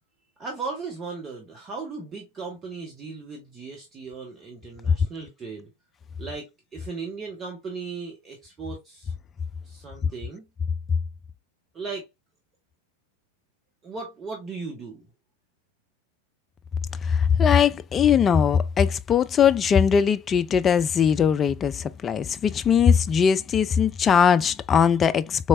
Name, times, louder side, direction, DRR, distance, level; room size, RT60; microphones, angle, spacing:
voice 1, 0.4-5.7 6.2-9.1 9.6-10.4 11.7-12.1 13.8-15.1, right 4 dB, 25° right, 1.0 m, -37 dB
voice 2, 17.0-25.5, left 7 dB, 25° left, 0.3 m, -20 dB
4.2 x 3.1 x 2.5 m
figure-of-eight pair, 90°, 0 cm